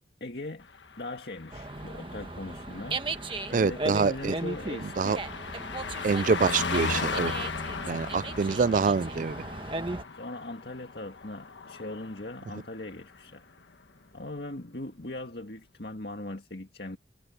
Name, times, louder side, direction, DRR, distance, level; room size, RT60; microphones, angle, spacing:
voice 1, 0.2-0.7 1.0-5.2 10.1-13.4 14.1-17.0, left 2 dB, 60° left, 2.0 m, -40 dB
Car passing by, 0.7-12.6 12.9-13.2, left 4 dB, 90° left, 1.4 m, -37 dB
Dog, 1.5-10.0, right 2 dB, 30° right, 1.3 m, -37 dB
voice 2, 3.5-4.3 5.0-5.2 6.0-7.3 7.9-9.4, right 5 dB, 45° right, 0.3 m, -25 dB
head